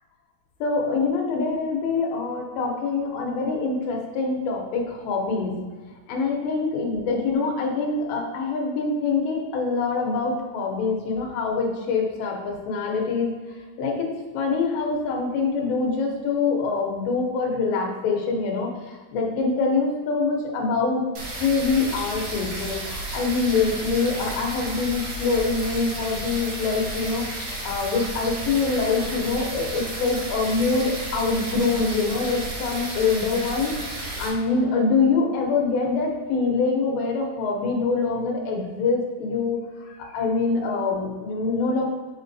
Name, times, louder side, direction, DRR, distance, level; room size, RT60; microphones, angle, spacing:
voice 1, 0.6-5.6 6.1-13.3 13.8-21.0 21.4-33.7 34.2-41.9, left 4 dB, 80° left, -1 dB, 3.2 m, -25 dB
sound 1, 21.2-34.3, right 1 dB, 65° right, 2.3 m, -33 dB
8.7 x 5.2 x 2.7 m, 1.4 s
omnidirectional pair, 5.0 m